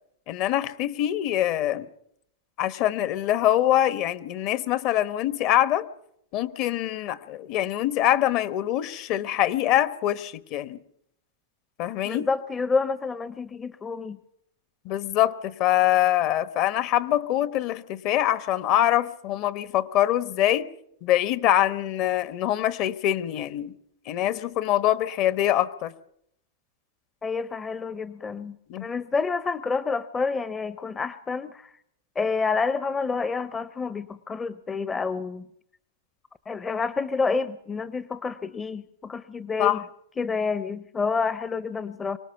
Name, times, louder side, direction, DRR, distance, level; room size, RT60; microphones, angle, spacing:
voice 1, 0.3-1.9 2.6-5.9 6.3-10.8 11.8-12.3 14.8-20.7 21.0-23.8 24.1-25.9 28.7-28.9 39.6-39.8, left 12 dB, 50° left, 15 dB, 1.1 m, -24 dB
voice 2, 12.0-14.2 27.2-28.6 28.8-31.7 32.2-35.4 36.5-39.8 40.2-42.2, left 4 dB, 20° left, 15 dB, 0.7 m, -28 dB
24.5 x 18.0 x 5.8 m, 0.74 s
hypercardioid pair, 120°, 0 cm